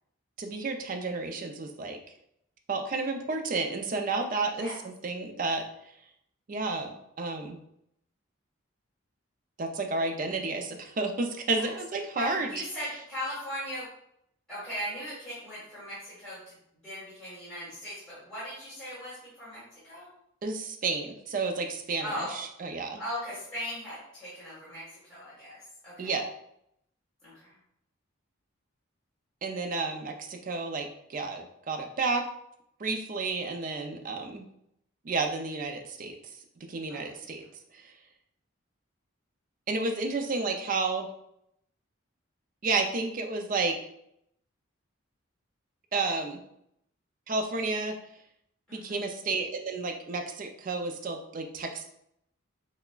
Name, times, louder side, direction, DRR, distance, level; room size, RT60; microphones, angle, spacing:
voice 1, 0.4-2.0 2.7-5.6 6.5-7.6 9.6-12.5 20.4-23.0 26.0-26.2 29.4-32.2 32.8-34.5 35.0-36.1 36.7-37.4 37.7-37.9 39.7-41.1 42.6-43.8 45.9-46.4 47.3-48.0 48.7-51.8, right 3 dB, 40° right, 5 dB, 0.4 m, -31 dB
voice 2, 12.1-13.9 14.5-16.5 16.8-20.1 22.0-22.4 23.0-26.2 27.2-27.5 36.9-37.1 48.7-49.0, equal, 5° left, -13 dB, 1.4 m, -38 dB
5.7 x 2.1 x 2.3 m, 0.76 s
head